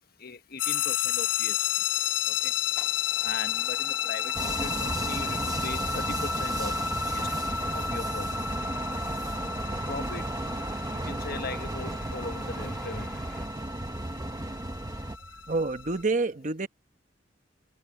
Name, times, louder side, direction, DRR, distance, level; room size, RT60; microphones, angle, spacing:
voice 1, 0.2-1.6 2.3-2.5 3.2-6.7 7.1-7.3 7.7-8.3 9.9-10.2 10.9-13.2, left 3 dB, 55° left, 1.3 m, -39 dB
sound 1, 0.6-16.0, left 8 dB, 90° left, 1.1 m, -32 dB
sound 2, 1.9-2.2 2.7-13.5, left 1 dB, 5° left, 1.6 m, -49 dB
sound 3, 4.3-15.2, right 2 dB, 20° right, 0.7 m, -34 dB
voice 2, 15.3-16.7, right 3 dB, 40° right, 1.1 m, -28 dB
head